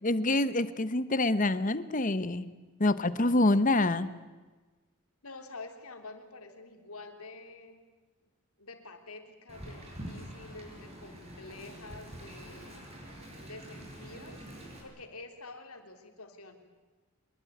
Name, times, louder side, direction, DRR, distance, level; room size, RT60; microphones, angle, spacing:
voice 1, 0.0-2.5 2.8-4.1, left 2 dB, 35° left, 14 dB, 1.1 m, -26 dB
voice 2, 5.2-7.8 8.6-12.9 13.5-14.5 14.8-16.5, left 3 dB, 80° left, 5 dB, 3.5 m, -48 dB
Wind, 9.5-14.8, right 1 dB, 30° right, 6.2 m, -46 dB
24.5 x 21.5 x 9.4 m, 1.3 s
head